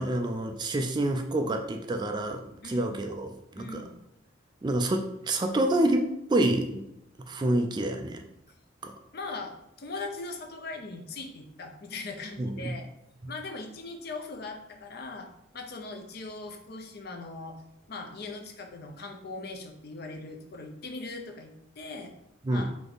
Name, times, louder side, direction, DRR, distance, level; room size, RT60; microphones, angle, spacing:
voice 1, 0.0-3.8 4.6-6.8 7.3-8.2 8.8-8.9 12.4-12.8 22.4-22.7, right 1 dB, 25° right, 4 dB, 0.3 m, -28 dB
voice 2, 3.6-4.0 9.1-12.9 13.3-17.6 17.9-22.1 22.5-22.7, left 3 dB, 55° left, 4 dB, 0.6 m, -40 dB
3.6 x 3.4 x 3.9 m, 0.82 s
head